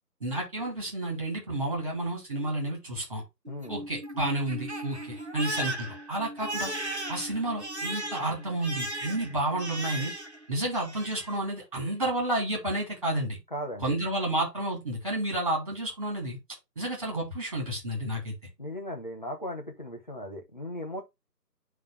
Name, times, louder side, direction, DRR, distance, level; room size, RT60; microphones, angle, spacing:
voice 1, 0.2-3.2 3.7-6.7 7.1-10.1 10.5-13.4 13.8-16.4 16.8-18.3, right 1 dB, 20° right, 2.9 m, -31 dB
Crying sobbing, 3.4-10.4 10.7-11.4, right 1 dB, 40° right, 0.8 m, -37 dB
voice 2, 3.5-3.8 13.5-13.9 18.6-21.0, equal, 25° left, 1.3 m, -37 dB
9.3 x 3.6 x 3.3 m
figure-of-eight pair, 170°, 50 cm